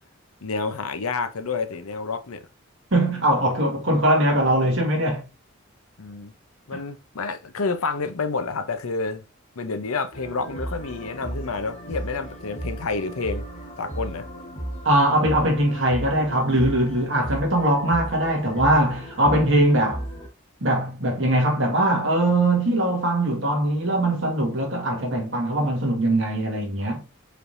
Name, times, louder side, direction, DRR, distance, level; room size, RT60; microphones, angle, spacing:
voice 1, 0.4-2.5 6.0-6.3 6.7-9.2 9.6-13.5 13.8-14.3, left 4 dB, 80° left, 0.7 m, -29 dB
voice 2, 2.9-5.2 6.7-6.8 14.8-20.0 20.6-27.0, right 1 dB, 60° right, 1.8 m, -21 dB
sound 1, 10.1-20.3, right 1 dB, 30° left, 1.2 m, -35 dB
5.0 x 3.3 x 2.6 m
head